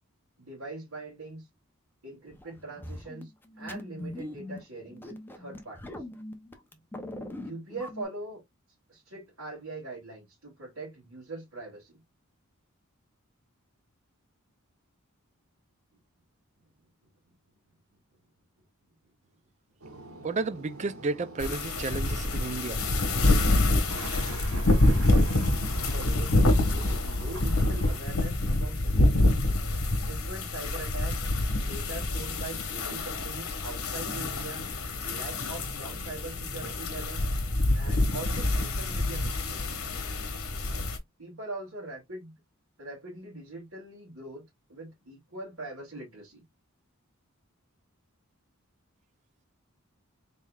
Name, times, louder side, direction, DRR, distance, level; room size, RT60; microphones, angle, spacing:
voice 1, 0.4-1.5 2.0-6.0 7.3-8.4 8.9-12.0 25.9-29.4 30.0-31.2 31.6-34.7 35.0-37.3 37.7-39.7 40.6-40.9 41.2-42.3 42.8-44.4 44.7-46.4, right 2 dB, 65° right, 2.5 m, -42 dB
sound 1, 2.3-8.0, left 1 dB, 10° left, 0.6 m, -41 dB
sound 2, 19.8-28.0, right 2 dB, 90° right, 1.1 m, -44 dB
voice 2, 20.2-22.8, right 3 dB, 30° right, 0.4 m, -32 dB
sound 3, 21.4-41.0, left 2 dB, 70° left, 1.2 m, -26 dB
4.0 x 3.8 x 2.3 m
head